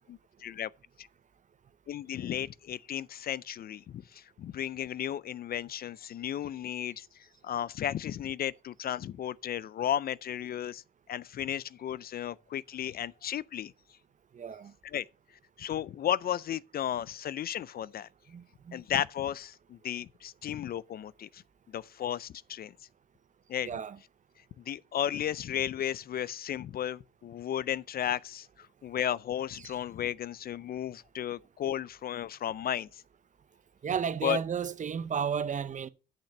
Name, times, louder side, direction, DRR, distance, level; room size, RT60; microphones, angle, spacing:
voice 1, 0.1-0.7 1.0-1.1 1.9-7.1 7.4-10.8 11.1-13.7 14.8-15.1 15.6-18.1 18.7-21.4 21.7-22.7 23.5-23.7 24.6-28.5 28.8-33.0 34.2-34.4, left 10 dB, 50° left, 0.4 m, -34 dB
voice 2, 14.3-14.7 18.3-18.8 23.6-24.0 29.6-29.7 33.8-35.9, right 7 dB, 40° right, 0.7 m, -33 dB
10.0 x 5.9 x 6.5 m
cardioid pair, 90°, 20 cm